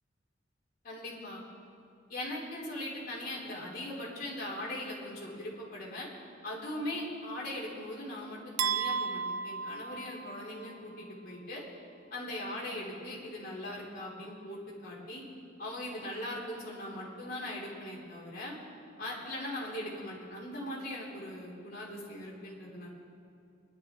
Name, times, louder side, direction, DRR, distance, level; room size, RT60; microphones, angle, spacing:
voice 1, 0.8-1.4 2.1-6.1 6.4-11.6 12.1-15.2 15.6-18.5 19.0-22.9, left 1 dB, 50° left, -5 dB, 3.3 m, -40 dB
sound 1, 8.6-10.7, right 6 dB, 90° right, 0.6 m, -34 dB
22.0 x 11.0 x 3.7 m, 2.6 s
head